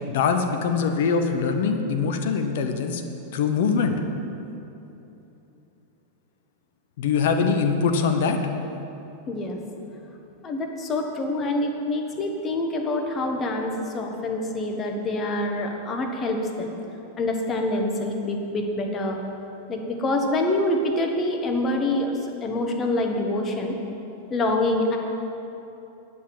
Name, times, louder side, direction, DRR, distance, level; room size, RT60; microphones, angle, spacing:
voice 1, 0.1-3.0 3.3-4.0 7.0-8.4, left 5 dB, 55° left, 6 dB, 0.8 m, -23 dB
voice 2, 9.3-9.6 10.4-16.8 17.2-19.2 19.7-23.8 24.3-25.0, left 2 dB, 25° left, 3 dB, 1.5 m, -26 dB
10.5 x 6.8 x 9.0 m, 2.9 s
figure-of-eight pair, 90°, 0 cm